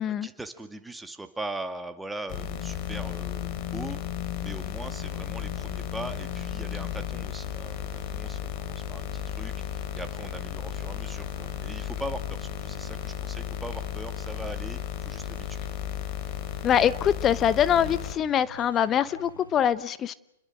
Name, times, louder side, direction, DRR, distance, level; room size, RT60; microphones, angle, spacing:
voice 1, 0.0-4.0 4.4-15.6, right 2 dB, 5° right, 7 dB, 2.2 m, -40 dB
sound 1, 2.3-18.1, left 10 dB, 40° left, 2.9 m, -34 dB
sound 2, 3.2-19.6, left 2 dB, 90° left, 4.7 m, -52 dB
voice 2, 16.6-20.1, left 9 dB, 25° left, 17 dB, 0.8 m, -24 dB
29.0 x 21.5 x 6.2 m, 0.85 s
figure-of-eight pair, 105°, 0 cm